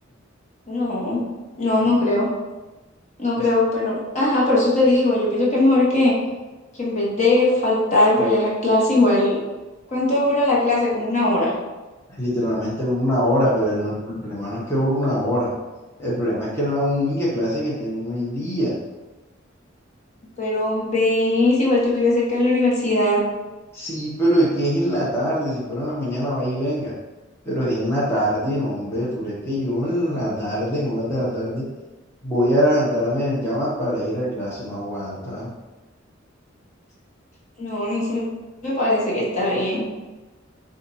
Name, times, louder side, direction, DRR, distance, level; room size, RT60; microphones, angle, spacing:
voice 1, 0.7-1.2 1.6-2.3 3.2-6.1 6.8-9.4 9.9-11.5 20.4-23.3 37.6-38.2 38.6-39.8, left 2 dB, 35° left, -5 dB, 1.1 m, -19 dB
voice 2, 12.1-15.5 16.0-18.7 23.7-26.9 27.4-31.6 32.2-35.5, equal, 15° left, -8 dB, 0.9 m, -23 dB
4.2 x 2.5 x 4.0 m, 1.2 s
head